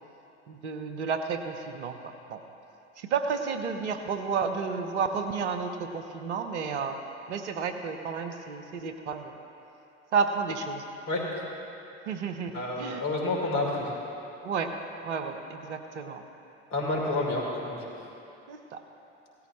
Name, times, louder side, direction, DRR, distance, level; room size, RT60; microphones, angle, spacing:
voice 1, 0.5-2.4 3.0-7.0 7.3-9.3 10.1-10.8 12.1-13.0 14.4-14.8 15.0-16.2 18.5-18.8, right 5 dB, 75° right, 6 dB, 1.0 m, -31 dB
voice 2, 11.1-11.4 12.5-13.9 16.7-17.9, left 2 dB, 55° left, -2 dB, 3.4 m, -29 dB
17.5 x 13.5 x 3.2 m, 2.8 s
figure-of-eight pair, 65°, 35 cm